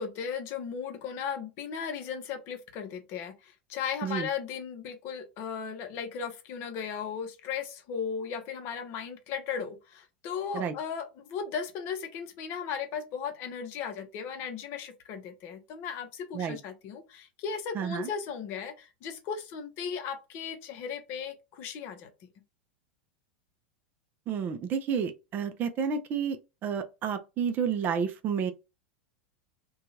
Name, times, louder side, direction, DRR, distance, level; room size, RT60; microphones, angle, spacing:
voice 1, 0.0-22.1, left 6 dB, 45° left, 0.7 m, -36 dB
voice 2, 17.7-18.1 24.3-28.5, right 7 dB, 35° right, 0.5 m, -30 dB
2.7 x 2.3 x 2.8 m
figure-of-eight pair, 85°, 6 cm